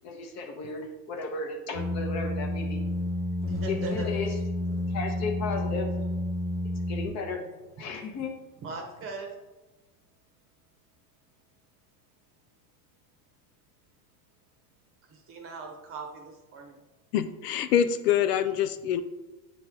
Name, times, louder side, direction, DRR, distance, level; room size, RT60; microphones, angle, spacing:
voice 1, 0.0-2.8 3.7-4.4 4.9-5.9 6.9-7.5 7.8-8.3, left 4 dB, 35° left, 3 dB, 0.9 m, -34 dB
sound 1, 1.7-7.1, left 1 dB, 15° left, 0.3 m, -30 dB
voice 2, 3.4-4.1 8.6-9.4 15.1-16.8, right 4 dB, 25° right, 3 dB, 0.9 m, -39 dB
voice 3, 17.1-19.0, left 9 dB, 70° left, 11 dB, 0.5 m, -25 dB
9.0 x 3.0 x 3.7 m, 1.1 s
supercardioid pair, 140°, 49 cm